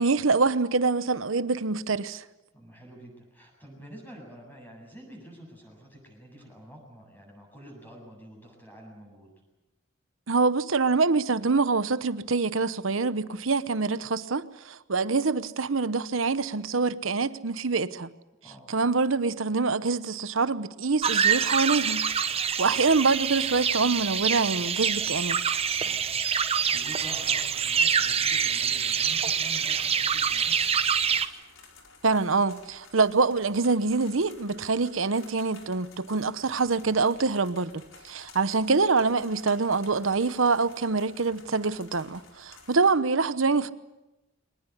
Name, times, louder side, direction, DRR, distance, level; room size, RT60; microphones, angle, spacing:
voice 1, 0.0-2.2 10.3-18.1 18.7-25.4 32.0-43.7, right 4 dB, 80° right, 1.0 m, -25 dB
voice 2, 2.5-9.3 18.4-18.7 25.8-26.2 26.5-30.6, equal, 10° left, 7.8 m, -47 dB
sound 1, 21.0-31.3, right 7 dB, 30° right, 1.0 m, -26 dB
sound 2, 26.9-42.9, left 4 dB, 80° left, 4.4 m, -52 dB
22.5 x 20.0 x 9.7 m
head